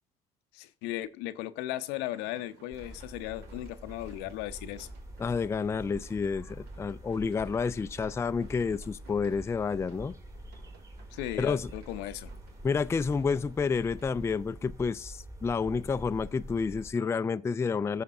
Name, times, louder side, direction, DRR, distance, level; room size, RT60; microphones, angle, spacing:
voice 1, 0.5-4.9 11.1-12.3, left 15 dB, 75° left, 0.6 m, -36 dB
sound 1, 1.7-14.3, right 4 dB, 70° right, 1.7 m, -60 dB
sound 2, 2.7-16.9, right 1 dB, 20° right, 1.9 m, -46 dB
voice 2, 5.2-10.1 11.4-11.7 12.6-18.0, left 5 dB, 15° left, 0.3 m, -30 dB
15.0 x 5.9 x 2.6 m
supercardioid pair, 75°, 18 cm